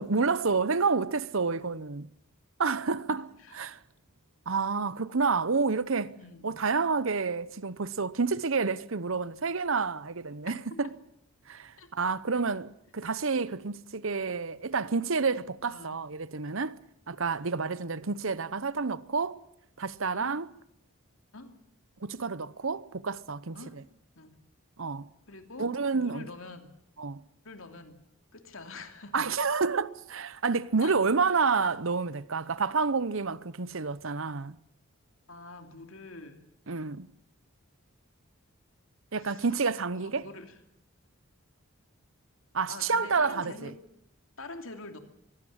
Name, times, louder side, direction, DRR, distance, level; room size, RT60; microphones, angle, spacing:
voice 1, 0.0-2.1 2.6-3.3 3.5-3.8 4.5-6.2 6.4-10.9 11.5-16.8 17.1-19.4 19.8-20.5 22.0-23.6 24.8-25.1 25.6-26.2 27.0-27.2 29.1-34.6 36.7-37.1 39.1-40.3 42.5-43.7, right 4 dB, 65° right, 0.9 m, -29 dB
voice 2, 6.2-6.6 10.7-11.0 11.8-11.9 15.7-16.0 20.1-20.4 21.3-21.5 23.5-23.8 24.1-24.4 25.3-26.7 27.4-27.9 28.3-29.2 30.8-31.0 31.3-31.5 35.3-36.4 39.2-39.5 39.9-40.6 42.7-43.8 44.4-45.0, left 3 dB, 70° left, 2.8 m, -45 dB
24.0 x 16.5 x 8.8 m
head